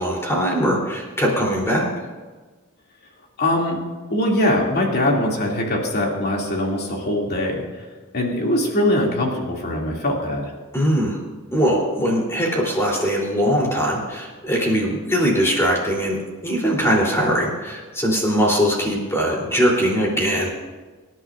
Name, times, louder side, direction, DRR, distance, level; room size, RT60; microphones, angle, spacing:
voice 1, 0.0-1.9 10.7-11.2 11.5-20.5, equal, 10° left, -2 dB, 3.5 m, -21 dB
voice 2, 3.4-3.8 4.1-7.9 8.1-10.5, left 1 dB, 45° left, -1 dB, 2.6 m, -22 dB
25.5 x 11.0 x 2.6 m, 1.3 s
head